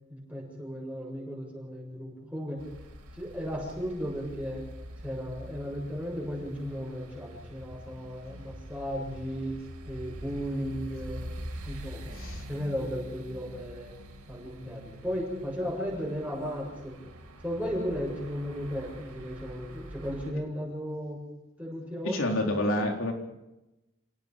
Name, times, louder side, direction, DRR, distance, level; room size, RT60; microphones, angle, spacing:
voice 1, 0.1-2.6 3.2-4.7 5.0-9.6 9.9-11.3 11.6-12.2 12.5-13.9 14.3-17.0 17.4-21.2 21.6-22.2, equal, 5° right, -2 dB, 7.8 m, -35 dB
sound 1, 2.6-20.3, equal, 90° right, 4.8 m, -45 dB
voice 2, 12.1-12.4 22.0-23.1, left 1 dB, 65° left, 2 dB, 4.0 m, -28 dB
29.5 x 17.5 x 5.3 m, 0.94 s
head